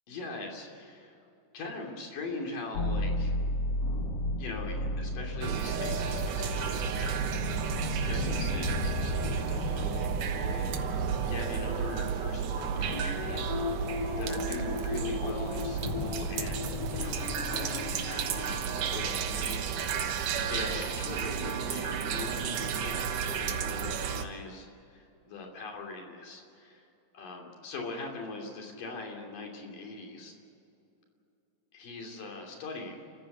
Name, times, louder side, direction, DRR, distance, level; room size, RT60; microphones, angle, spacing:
voice 1, 0.1-1.2 1.5-3.3 4.4-7.2 8.1-19.7 20.5-26.9 27.1-30.3 31.7-33.1, left 3 dB, 75° left, 1 dB, 4.6 m, -41 dB
sound 1, 2.7-21.5 21.9-22.1, left 3 dB, 55° left, 1.9 m, -36 dB
sound 2, 5.4-24.2, right 7 dB, 70° right, 2.6 m, -32 dB
29.5 x 14.5 x 7.9 m, 2.7 s
omnidirectional pair, 3.9 m